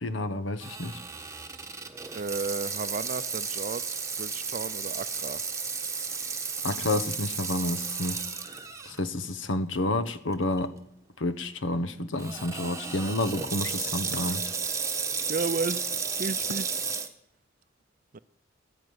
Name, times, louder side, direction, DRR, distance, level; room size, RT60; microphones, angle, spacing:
voice 1, 0.0-1.0 6.6-8.2 8.8-10.7 11.2-14.4, left 2 dB, 80° left, 1.1 m, -30 dB
Water tap faucet / Sink (filling or washing), 0.6-9.0 9.5-9.6 10.3-10.6 12.2-17.1, right 5 dB, 15° right, 1.2 m, -33 dB
voice 2, 2.1-5.4 15.3-15.9 16.2-16.8 18.1-18.2, right 4 dB, 45° right, 0.5 m, -33 dB
12.5 x 10.0 x 9.5 m
head